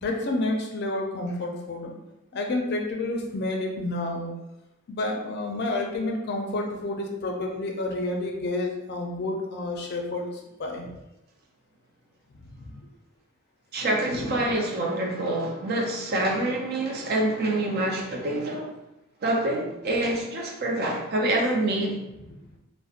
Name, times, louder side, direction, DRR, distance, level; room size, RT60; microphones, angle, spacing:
voice 1, 0.0-1.9 2.3-4.3 4.9-10.3 10.6-11.0 12.6-12.7 14.1-14.5, left 2 dB, 50° left, 1 dB, 0.4 m, -29 dB
voice 2, 13.7-18.7 19.2-22.0, right 1 dB, 50° right, 0 dB, 0.5 m, -26 dB
2.8 x 2.0 x 2.4 m, 0.93 s
head